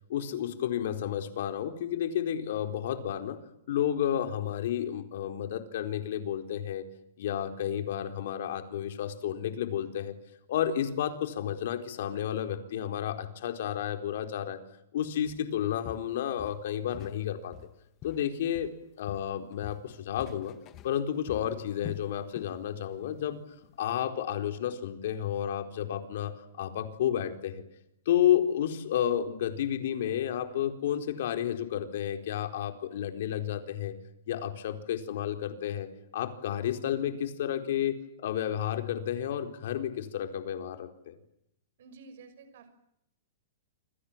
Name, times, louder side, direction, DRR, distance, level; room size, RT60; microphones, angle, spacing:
voice 1, 0.1-3.4 3.7-6.9 7.2-10.1 10.5-14.6 14.9-17.5 18.0-18.7 19.0-20.6 20.8-23.4 23.8-27.6 28.1-34.0 34.3-41.2, left 10 dB, 60° left, 7 dB, 4.3 m, -31 dB
Walk footsteps, 15.3-15.5 15.8-17.2 17.5-18.8 19.1-22.6 22.9-23.2 23.6-23.7, left 13 dB, 25° left, 1.1 m, -47 dB
voice 2, 41.8-42.7, right 4 dB, 65° right, 10 dB, 5.9 m, -51 dB
28.0 x 27.0 x 7.5 m, 0.78 s
supercardioid pair, 165°, 0 cm